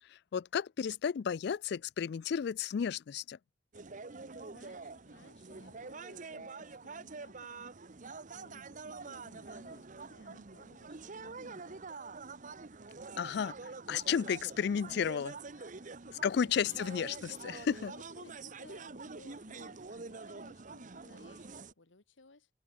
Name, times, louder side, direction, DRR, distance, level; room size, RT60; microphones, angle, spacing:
voice 1, 0.0-3.4 13.2-15.3 16.2-17.9, left 7 dB, 60° left, 0.3 m, -33 dB
sound 1, 3.7-21.7, right 4 dB, 45° right, 1.0 m, -46 dB
voice 2, 4.0-7.8 8.0-12.0 15.7-16.6 17.5-22.5, left 3 dB, 90° left, 1.8 m, -60 dB
head